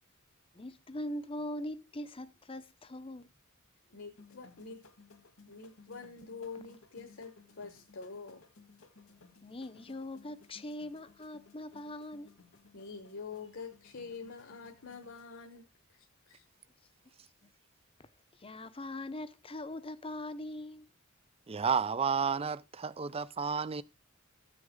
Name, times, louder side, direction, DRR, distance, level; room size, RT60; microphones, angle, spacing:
voice 1, 0.5-3.3 9.4-12.3 17.4-17.5 18.0-18.1 18.4-20.9, left 1 dB, 25° left, 0.7 m, -41 dB
voice 2, 3.9-4.8 5.5-8.4 12.7-16.4, left 4 dB, 60° left, 1.2 m, -46 dB
sound 1, 4.1-15.2, left 4 dB, 85° left, 2.0 m, -60 dB
voice 3, 21.5-23.8, right 6 dB, 30° right, 0.5 m, -31 dB
15.0 x 6.4 x 3.7 m
head